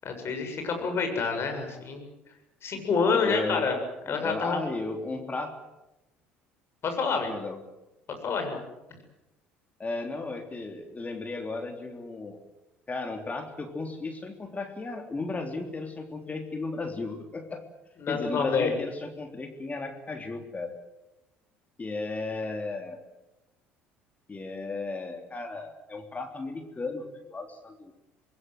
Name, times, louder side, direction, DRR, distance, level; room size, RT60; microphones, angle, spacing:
voice 1, 0.0-2.0 2.6-3.8 4.1-4.6 6.8-7.3 8.2-8.6 18.0-18.7, left 5 dB, 45° left, 5 dB, 7.3 m, -27 dB
voice 2, 2.8-3.8 4.1-5.6 7.3-7.6 9.8-12.4 12.9-17.7 18.1-20.8 21.8-23.0 24.3-27.9, left 3 dB, 25° left, 5 dB, 3.3 m, -35 dB
26.5 x 21.0 x 7.9 m, 0.97 s
hypercardioid pair, 60°, 6 cm